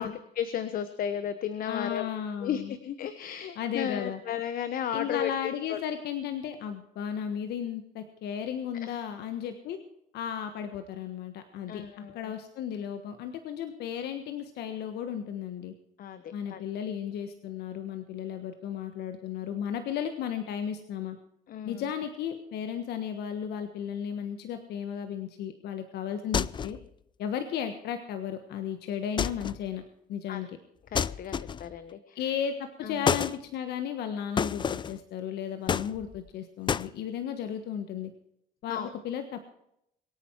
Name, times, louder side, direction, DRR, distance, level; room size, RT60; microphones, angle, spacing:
voice 1, 0.0-2.1 2.4-5.3 5.7-5.8 8.8-9.0 11.7-12.3 16.0-16.6 21.5-21.9 30.3-30.4 30.9-32.2 32.8-33.1 38.7-38.9, left 9 dB, 60° left, 11 dB, 1.1 m, -34 dB
voice 2, 1.7-2.7 3.6-4.2 4.9-9.8 10.1-11.8 12.1-15.7 16.3-21.2 21.6-26.8 27.2-29.8 30.1-30.5 32.1-38.1 38.6-38.8 39.0-39.5, left 8 dB, 75° left, 8 dB, 1.4 m, -34 dB
sound 1, 26.3-26.9 29.2-29.7 30.9-31.8 33.1-33.4 34.4-35.0 35.7-36.3 36.7-36.9, left 7 dB, 30° left, 0.4 m, -29 dB
23.5 x 8.9 x 4.6 m, 0.76 s
cardioid pair, 110°, 17 cm